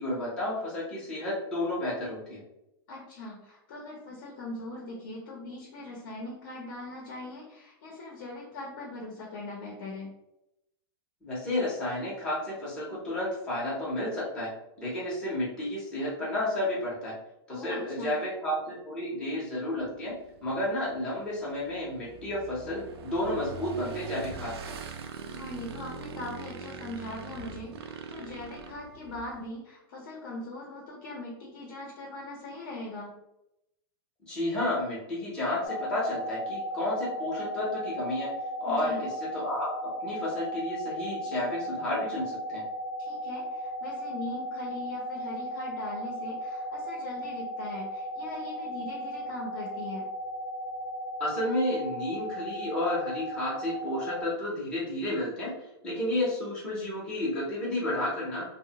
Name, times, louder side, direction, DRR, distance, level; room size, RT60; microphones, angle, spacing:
voice 1, 0.0-2.4 11.2-14.5 14.8-17.1 17.5-20.1 20.4-24.7 34.3-38.3 38.6-39.7 40.0-42.6 51.2-55.5 55.8-58.4, left 1 dB, 5° left, -8 dB, 0.6 m, -31 dB
voice 2, 2.9-10.1 17.5-18.1 25.3-33.1 38.7-39.0 43.0-50.1, left 2 dB, 50° left, -1 dB, 0.6 m, -41 dB
Motorcycle / Engine, 19.8-29.5, right 5 dB, 75° right, 0.4 m, -42 dB
sound 1, 35.6-54.2, equal, 90° left, 0.6 m, -36 dB
2.7 x 2.0 x 2.7 m, 0.87 s
supercardioid pair, 170°, 13 cm